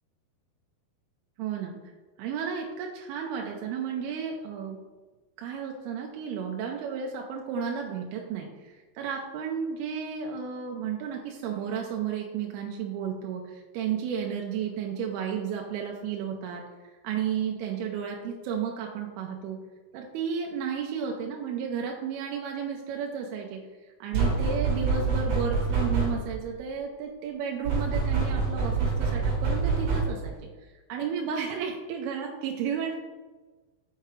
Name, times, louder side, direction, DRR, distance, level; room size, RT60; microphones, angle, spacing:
voice 1, 1.4-1.8 2.2-4.8 5.4-16.6 17.0-19.6 19.9-23.6 24.0-30.4 30.9-33.0, right 7 dB, 85° right, 1 dB, 2.5 m, -33 dB
sound 1, 24.1-26.4 27.6-30.3, right 4 dB, 55° right, 2.2 m, -26 dB
5.8 x 5.6 x 3.1 m, 1.3 s
omnidirectional pair, 4.4 m